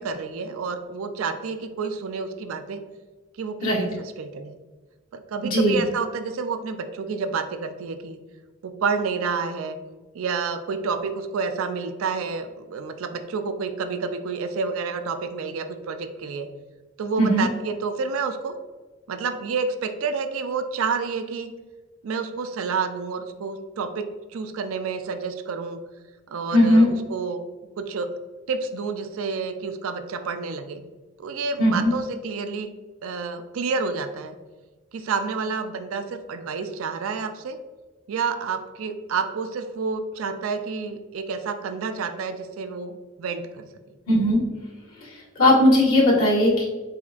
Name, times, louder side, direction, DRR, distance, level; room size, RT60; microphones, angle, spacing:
voice 1, 0.0-2.8 3.4-4.6 5.1-8.2 8.6-9.8 10.1-16.5 17.0-18.5 19.1-21.5 22.0-24.1 24.3-25.8 26.3-27.4 27.8-28.1 28.5-30.8 31.2-32.7 33.0-34.4 34.9-37.6 38.1-43.7, right 5 dB, 75° right, 9 dB, 0.4 m, -29 dB
voice 2, 26.5-26.9 31.6-31.9 44.1-44.4 45.4-46.7, left 1 dB, 90° left, -6 dB, 1.5 m, -18 dB
4.2 x 4.1 x 2.3 m, 1.3 s
head